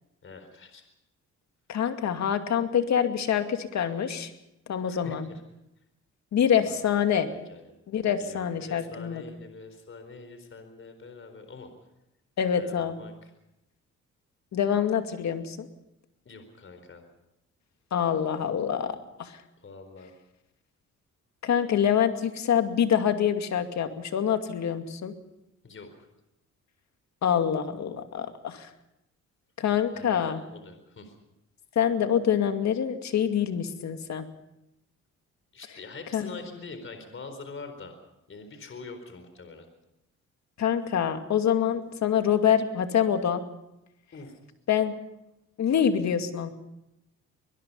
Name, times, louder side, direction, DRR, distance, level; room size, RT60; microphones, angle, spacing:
voice 1, 0.2-0.8 4.8-5.4 6.6-7.8 8.2-11.7 12.5-13.3 16.2-17.0 19.6-20.1 25.6-25.9 29.9-31.1 35.5-38.0 38.3-39.7 44.1-44.4, left 4 dB, 45° left, 8 dB, 4.3 m, -44 dB
voice 2, 1.7-4.3 4.7-5.3 6.3-7.3 7.9-9.2 12.4-13.0 14.5-15.7 17.9-19.4 21.4-25.1 27.2-28.7 29.6-30.4 31.8-34.2 36.1-36.3 40.6-43.4 44.7-45.0 45.6-46.5, left 8 dB, 65° left, 7 dB, 2.4 m, -26 dB
23.5 x 21.5 x 5.6 m, 0.88 s
cardioid pair, 90°, 30 cm